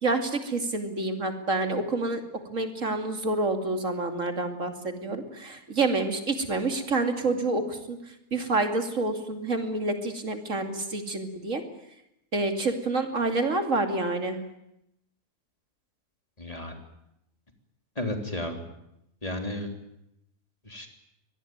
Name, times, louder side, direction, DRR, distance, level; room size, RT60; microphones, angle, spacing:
voice 1, 0.0-2.2 2.5-8.0 8.3-11.6 12.3-14.4, right 2 dB, 55° right, 5 dB, 3.1 m, -28 dB
voice 2, 16.4-16.7 18.0-18.6 19.2-19.7 20.7-20.9, left 1 dB, 25° left, 4 dB, 3.5 m, -33 dB
24.0 x 20.0 x 9.4 m, 0.82 s
omnidirectional pair, 1.6 m